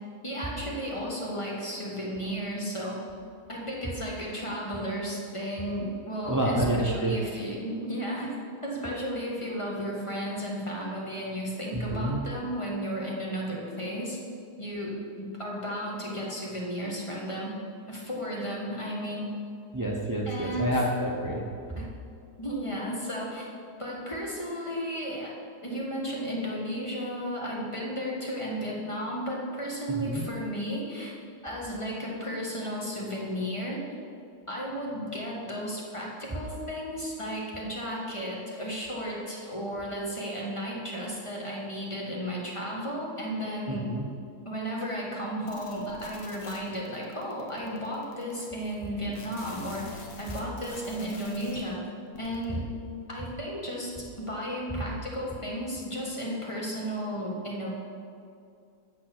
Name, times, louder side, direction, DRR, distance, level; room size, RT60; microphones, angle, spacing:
voice 1, 0.2-3.0 3.5-8.3 8.6-14.2 14.6-17.5 17.9-19.3 20.3-20.8 21.8-21.9 22.4-23.5 23.8-25.3 25.6-31.1 31.4-33.8 34.5-43.8 44.4-49.9 50.2-51.8 52.2-52.6 53.1-53.9 54.2-57.8, equal, 20° left, -3 dB, 1.5 m, -34 dB
voice 2, 6.2-7.1 11.7-12.2 19.7-21.5 29.9-30.2 43.7-44.1, right 1 dB, 30° right, -2 dB, 0.3 m, -28 dB
sound 1, 45.5-51.6 52.0-52.5, left 3 dB, 70° left, 1.6 m, -46 dB
8.8 x 6.7 x 6.0 m, 2.5 s
omnidirectional pair, 1.7 m